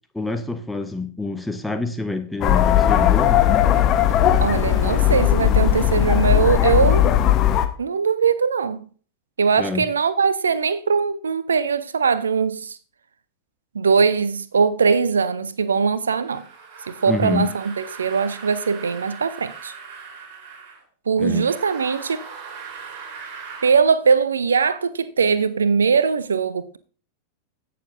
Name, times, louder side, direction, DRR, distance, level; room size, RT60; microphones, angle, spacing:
voice 1, 0.1-3.4 9.6-9.9 17.1-17.5 21.2-21.5, left 3 dB, 5° left, 0.9 m, -27 dB
sound 1, 2.4-7.7, left 11 dB, 35° left, 1.0 m, -17 dB
voice 2, 4.4-7.1 7.8-8.8 9.4-12.8 13.7-16.4 16.9-19.7 21.1-22.3 23.6-26.8, right 5 dB, 70° right, 0.6 m, -21 dB
sound 2, 16.2-20.8 21.4-23.8, right 5 dB, 45° right, 2.9 m, -39 dB
16.5 x 6.8 x 2.5 m
figure-of-eight pair, 90°, 0 cm